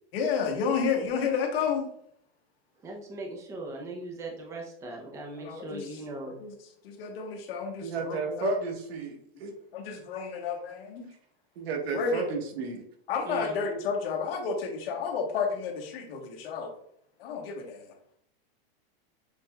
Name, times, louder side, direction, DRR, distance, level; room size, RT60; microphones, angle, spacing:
voice 1, 0.1-1.9 5.3-6.5 6.8-8.5 9.7-11.1 11.9-12.2 13.1-16.7 17.2-17.9, left 5 dB, 65° left, 1 dB, 1.4 m, -31 dB
voice 2, 2.8-6.4 13.2-13.6, right 2 dB, 10° right, 0 dB, 0.6 m, -39 dB
voice 3, 7.8-9.5 11.6-12.8, right 4 dB, 75° right, 2 dB, 1.4 m, -33 dB
6.9 x 3.3 x 2.3 m, 0.68 s
supercardioid pair, 160°, 32 cm